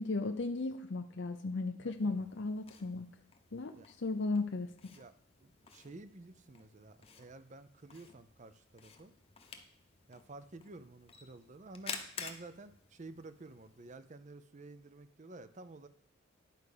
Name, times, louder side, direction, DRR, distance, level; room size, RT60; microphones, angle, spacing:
voice 1, 0.0-3.1 3.5-4.7, left 3 dB, 60° left, 7 dB, 0.6 m, -35 dB
voice 2, 1.8-2.1 3.7-3.9 4.9-9.1 10.1-15.9, right 2 dB, 35° right, 12 dB, 0.6 m, -52 dB
Camera, 1.9-13.9, left 5 dB, 30° left, 0.9 m, -51 dB
10.5 x 4.8 x 6.7 m, 0.65 s
head